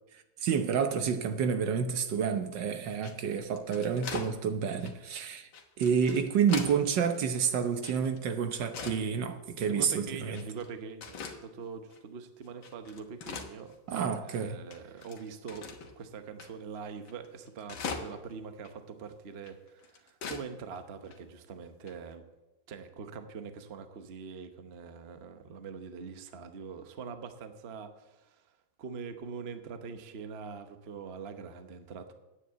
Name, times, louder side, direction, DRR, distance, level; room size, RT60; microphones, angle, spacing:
voice 1, 0.4-5.5 5.8-10.4 13.9-14.6, right 7 dB, 70° right, 1.5 m, -29 dB
sound 1, 2.9-4.3 4.8-5.0 5.5-6.8 7.1-8.2 8.5-9.0 9.6-9.7 10.3-10.7 11.0-11.4 11.9-12.0 12.4-14.0 14.3-14.4 14.7-15.9 16.4-16.5 16.8-16.9 17.1-18.3 18.7-18.8 19.4-20.5 20.8-20.9 21.1-21.2 21.9-22.1, left 5 dB, 75° left, 2.0 m, -41 dB
voice 2, 9.6-22.2 22.7-28.5 28.8-32.1, right 5 dB, 40° right, 1.0 m, -43 dB
9.9 x 9.2 x 8.0 m
omnidirectional pair, 2.2 m